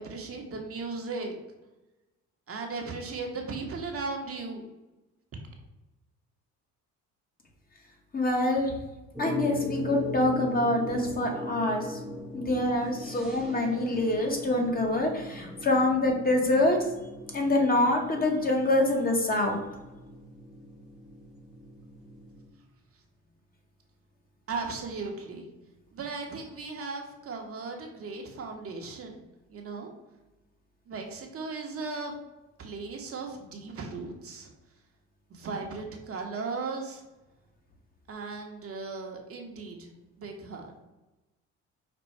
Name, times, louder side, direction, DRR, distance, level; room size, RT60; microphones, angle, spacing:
voice 1, 0.0-1.4 2.5-4.7 24.5-25.5 25.9-29.2 29.5-29.9 30.9-32.1 32.6-34.5 35.3-37.0 38.1-39.9 40.2-40.7, right 4 dB, 45° right, 2 dB, 0.9 m, -37 dB
voice 2, 8.1-8.7 9.2-12.0 12.3-16.8 17.3-19.6, left 2 dB, 30° left, 2 dB, 0.9 m, -25 dB
sound 1, 9.1-22.5, left 1 dB, ahead, 0.9 m, -39 dB
5.2 x 2.2 x 4.4 m, 1.0 s
cardioid pair, 105°, 31 cm